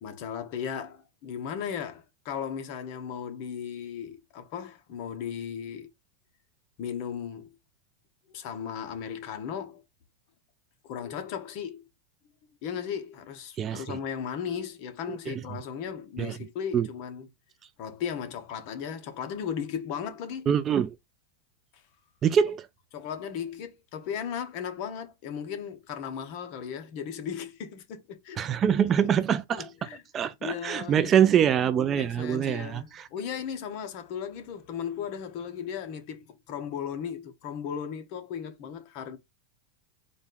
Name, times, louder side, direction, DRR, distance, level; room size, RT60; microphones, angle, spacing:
voice 1, 0.0-5.9 6.8-7.5 8.3-9.8 10.8-11.8 12.6-17.3 17.8-20.5 21.7-21.8 22.9-28.4 29.0-29.1 29.5-31.3 32.0-39.2, left 8 dB, 45° left, 1.0 m, -36 dB
voice 2, 13.6-14.0 15.1-15.3 16.2-16.3 16.7-16.9 20.5-20.9 22.2-22.7 28.4-29.7 30.1-33.0, right 8 dB, 25° right, 0.3 m, -24 dB
4.1 x 2.6 x 3.8 m
supercardioid pair, 155°, 0 cm